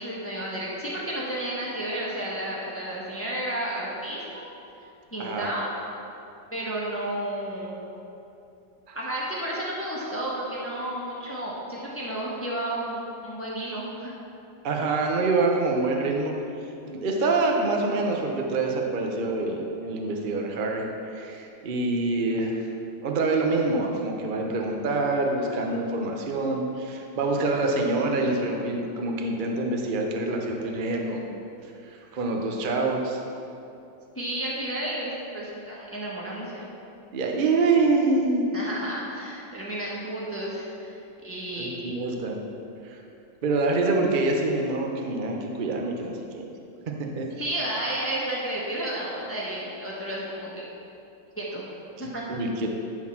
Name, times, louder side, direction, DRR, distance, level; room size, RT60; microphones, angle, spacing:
voice 1, 0.0-4.4 5.1-5.7 6.5-7.7 8.9-14.1 34.1-36.7 38.5-41.0 41.2-41.9 47.4-50.6 51.3-51.6 52.0-52.2, right 1 dB, 10° left, -5 dB, 1.1 m, -32 dB
voice 2, 5.2-5.5 8.9-9.1 14.6-16.3 16.9-20.8 21.1-22.6 23.0-31.2 32.1-33.2 37.1-38.4 41.6-42.4 42.8-43.0 43.4-46.4 47.0-47.5 52.0-52.7, right 3 dB, 55° right, 1 dB, 0.5 m, -26 dB
12.0 x 4.0 x 5.9 m, 2.7 s
omnidirectional pair, 2.1 m